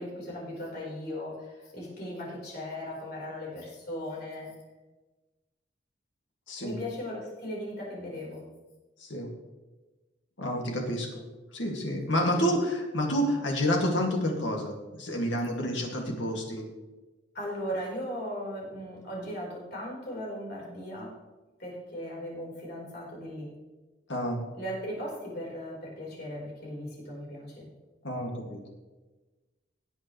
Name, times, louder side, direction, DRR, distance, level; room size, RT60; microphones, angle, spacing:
voice 1, 0.0-4.6 6.6-8.4 17.3-21.2 21.6-23.5 24.5-27.7, equal, 55° left, -3 dB, 4.4 m, -37 dB
voice 2, 10.4-11.1 11.5-16.7 24.1-24.4 28.0-28.6, equal, 75° left, 1 dB, 2.2 m, -29 dB
18.0 x 8.0 x 3.2 m, 1.2 s
head